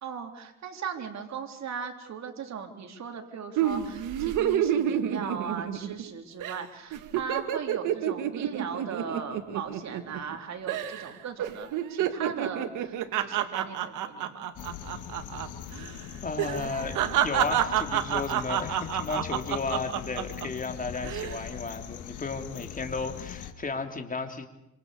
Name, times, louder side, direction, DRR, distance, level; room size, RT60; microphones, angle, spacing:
voice 1, 0.0-14.5, right 6 dB, 65° right, 3 dB, 3.7 m, -38 dB
sound 1, 3.6-6.1 6.4-6.6 6.9-10.4 10.7-11.1 11.4-15.5 15.7-15.9 16.4-20.5 21.0-21.4, right 10 dB, 90° right, 2.0 m, -29 dB
sound 2, 14.5-23.5, left 9 dB, 85° left, 2.5 m, -41 dB
voice 2, 16.2-24.5, left 4 dB, 25° left, 4 dB, 3.4 m, -34 dB
26.0 x 26.0 x 6.8 m, 0.87 s
cardioid pair, 90°, 30 cm